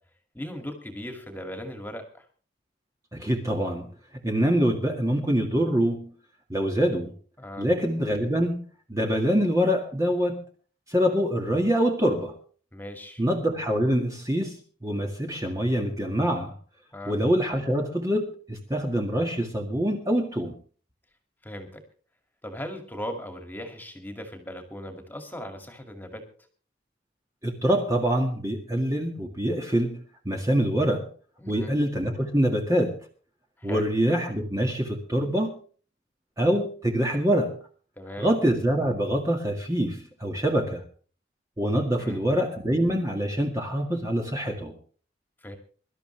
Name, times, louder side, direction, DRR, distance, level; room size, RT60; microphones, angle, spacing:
voice 1, 0.3-2.3 7.4-7.7 12.7-13.2 16.9-17.2 21.4-21.8 22.4-26.2 31.4-31.7 33.6-33.9 38.0-38.3 42.0-42.2 45.4-45.6, equal, 10° left, 6 dB, 2.4 m, -38 dB
voice 2, 3.1-3.9 4.2-6.1 6.5-7.1 7.6-8.6 8.9-10.4 10.9-12.4 13.2-16.5 17.1-20.5 27.4-31.1 31.5-33.0 33.6-35.6 36.4-37.6 38.2-40.8 41.6-44.7, equal, 15° right, 1 dB, 2.0 m, -25 dB
23.5 x 12.5 x 3.4 m, 0.40 s
head